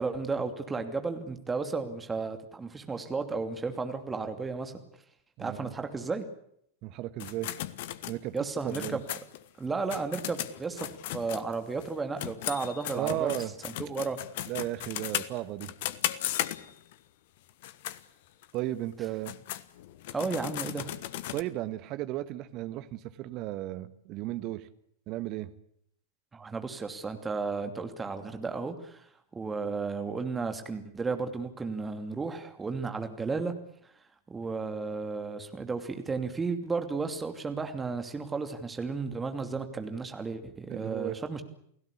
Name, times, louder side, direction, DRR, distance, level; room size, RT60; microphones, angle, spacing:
voice 1, 0.0-4.8 5.4-6.3 8.3-9.0 9.6-10.9 11.1-13.3 13.6-14.2 20.1-20.9 26.3-29.1 29.3-33.5 34.3-41.4, right 4 dB, 15° right, 7 dB, 2.8 m, -33 dB
voice 2, 5.4-5.7 6.8-7.5 8.1-8.3 8.6-9.0 12.9-13.5 14.5-15.7 18.5-19.3 21.3-24.7 25.1-25.5 40.7-41.2, right 15 dB, 40° right, 13 dB, 1.5 m, -34 dB
sound 1, 7.2-11.9 12.2-16.9 17.5-18.0 18.4-18.5 19.0-21.4, left 13 dB, 50° left, 1.3 m, -36 dB
29.5 x 17.0 x 8.5 m, 0.72 s
figure-of-eight pair, 90°, 0 cm